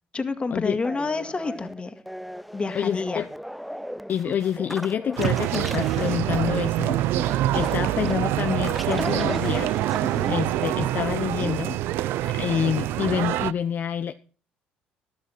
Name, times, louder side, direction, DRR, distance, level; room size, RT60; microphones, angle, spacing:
voice 1, 0.1-1.9 2.5-3.3, left 4 dB, 25° left, 2.0 m, -28 dB
sound 1, 0.8-11.6, equal, ahead, 0.5 m, -37 dB
voice 2, 2.7-3.3 4.1-7.0 7.5-9.8 10.3-11.8 12.2-14.1, left 8 dB, 55° left, 0.8 m, -27 dB
sound 2, 5.2-13.5, right 14 dB, 75° right, 0.5 m, -25 dB
13.0 x 12.5 x 4.3 m
supercardioid pair, 65°, 4 cm